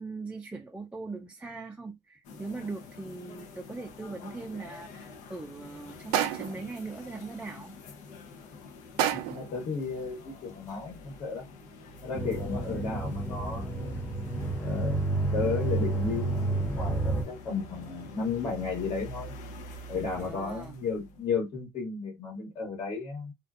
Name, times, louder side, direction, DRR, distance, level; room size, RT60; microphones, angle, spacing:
voice 1, 0.0-7.8 20.2-20.7, right 3 dB, 10° right, 0.4 m, -40 dB
sound 1, 2.2-21.3, left 3 dB, 70° left, 0.7 m, -47 dB
sound 2, 6.1-6.7 9.0-9.5, right 11 dB, 85° right, 0.4 m, -28 dB
voice 2, 9.1-11.5 12.0-14.0 14.6-15.0 15.3-19.3 19.9-23.3, left 4 dB, 50° left, 1.3 m, -33 dB
sound 3, 12.1-17.2, right 2 dB, 15° left, 0.9 m, -30 dB
2.5 x 2.4 x 2.4 m
supercardioid pair, 95°, 13 cm